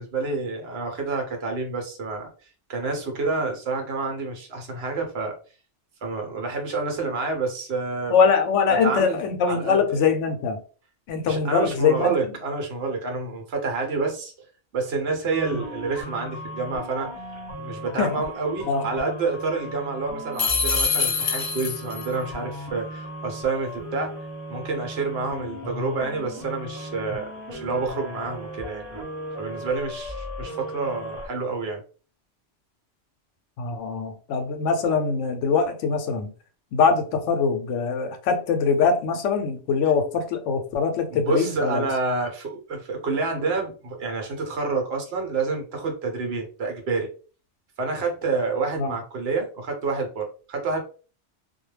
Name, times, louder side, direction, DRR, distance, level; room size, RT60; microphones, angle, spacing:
voice 1, 0.0-2.3 2.7-5.4 6.0-8.2 8.8-9.2 9.5-9.8 11.3-14.3 14.7-17.1 17.6-24.2 24.5-29.0 29.4-31.8 41.1-47.1 47.8-50.8, right 4 dB, 65° right, 0.9 m, -28 dB
voice 2, 8.1-10.6 11.1-12.1 15.5-15.6 18.0-18.1 18.7-18.8 33.6-36.3 36.7-41.9 48.8-48.9, left 5 dB, 80° left, 0.9 m, -23 dB
sound 1, 15.3-31.3, equal, 25° right, 0.8 m, -37 dB
sound 2, 20.4-22.1, left 6 dB, 50° left, 0.5 m, -24 dB
2.2 x 2.1 x 3.1 m
omnidirectional pair, 1.2 m